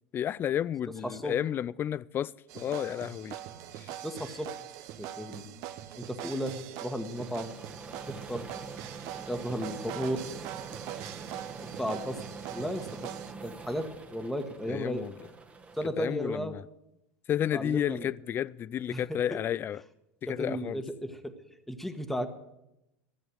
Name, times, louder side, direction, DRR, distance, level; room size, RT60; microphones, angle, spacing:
voice 1, 0.1-3.4 14.7-15.1 16.0-16.6 17.3-19.8 20.3-20.8, left 10 dB, 35° left, 0.4 m, -31 dB
voice 2, 1.0-1.3 4.0-4.7 5.0-5.5 6.0-7.5 8.1-8.5 9.3-10.3 11.8-12.2 12.5-13.1 13.4-15.1 15.7-16.5 17.5-18.1 18.9-19.4 20.3-21.3 21.7-22.3, equal, 5° left, 1.4 m, -34 dB
sound 1, 2.5-13.3, right 12 dB, 60° right, 0.9 m, -42 dB
sound 2, 7.1-15.9, right 4 dB, 20° right, 1.3 m, -44 dB
14.0 x 7.5 x 8.0 m
hypercardioid pair, 95°, 7 cm